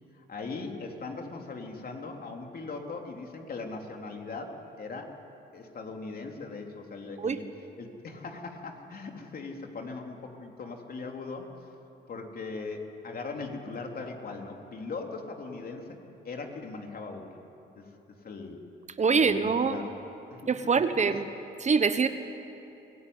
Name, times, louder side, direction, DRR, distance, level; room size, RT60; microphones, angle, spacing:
voice 1, 0.1-5.1 5.5-7.4 7.8-11.5 12.1-17.3 17.7-17.9 18.2-18.6 19.1-19.9 20.3-21.1, left 3 dB, 50° left, 2 dB, 3.3 m, -39 dB
voice 2, 19.0-19.8 20.5-21.2 21.6-22.1, right 5 dB, 35° right, 10 dB, 1.1 m, -24 dB
24.5 x 17.0 x 9.5 m, 2.9 s
cardioid pair, 90°, 20 cm